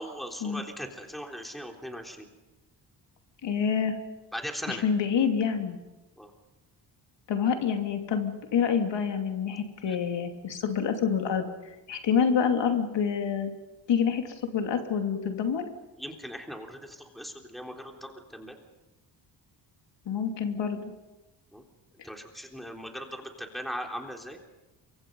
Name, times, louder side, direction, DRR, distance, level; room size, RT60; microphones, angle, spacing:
voice 1, 0.0-2.3 4.3-4.8 6.2-6.3 9.9-10.0 16.0-18.6 21.5-21.6 22.0-24.4, equal, ahead, 2 dB, 3.7 m, -39 dB
voice 2, 3.4-3.9 4.7-5.8 7.3-11.5 11.9-13.5 13.9-15.6 20.1-20.9, left 7 dB, 70° left, 4 dB, 2.8 m, -27 dB
28.0 x 24.5 x 5.5 m, 1.1 s
cardioid pair, 105°, 44 cm